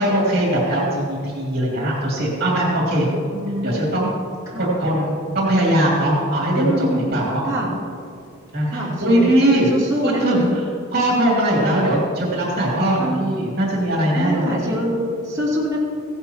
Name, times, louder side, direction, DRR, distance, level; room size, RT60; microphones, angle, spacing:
voice 1, 0.0-3.1 3.6-4.1 4.6-7.4 8.5-9.7 10.0-10.5 10.9-14.6, right 1 dB, 50° right, -4 dB, 2.7 m, -20 dB
voice 2, 3.2-4.1 4.5-4.7 6.5-7.1 7.4-7.7 8.7-9.4 9.7-10.4 11.1-11.2 13.0-13.2 14.1-15.8, equal, 20° right, -9 dB, 2.7 m, -25 dB
16.0 x 11.5 x 2.9 m, 2.3 s
head